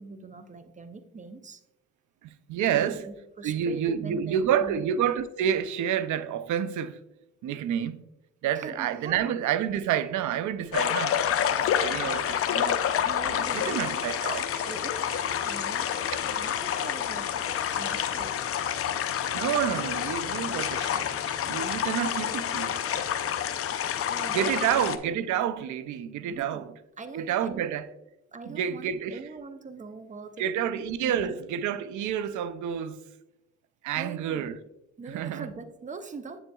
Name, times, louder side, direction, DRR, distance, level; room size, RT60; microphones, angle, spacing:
voice 1, 0.0-1.6 2.7-4.8 8.5-9.3 9.7-9.8 13.0-14.1 14.7-18.4 23.9-24.8 26.3-26.6 27.0-27.7 28.3-31.4 34.0-34.5 35.0-36.4, right 4 dB, 25° right, 0.6 m, -42 dB
voice 2, 2.2-3.0 3.4-7.0 7.4-8.0 8.4-11.2 11.5-12.8 13.3-14.6 19.3-21.2 21.5-23.0 24.3-26.7 27.1-27.9 28.5-29.2 30.4-33.0 33.8-34.6 35.1-35.5, right 9 dB, 75° right, 0.5 m, -29 dB
sound 1, 10.7-25.0, left 9 dB, 50° left, 0.5 m, -28 dB
7.2 x 6.9 x 2.3 m
cardioid pair, 90°, 30 cm